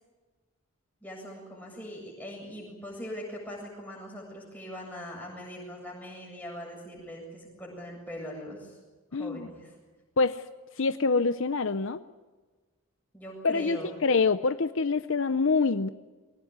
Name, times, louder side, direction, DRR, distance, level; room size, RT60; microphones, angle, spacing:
voice 1, 1.0-8.8 9.1-9.8 13.1-13.9, equal, 10° left, -2 dB, 7.7 m, -41 dB
voice 2, 9.1-9.5 10.2-10.4 10.8-12.0 13.4-15.9, left 4 dB, 65° left, 12 dB, 0.7 m, -26 dB
23.0 x 19.0 x 9.6 m, 1.3 s
head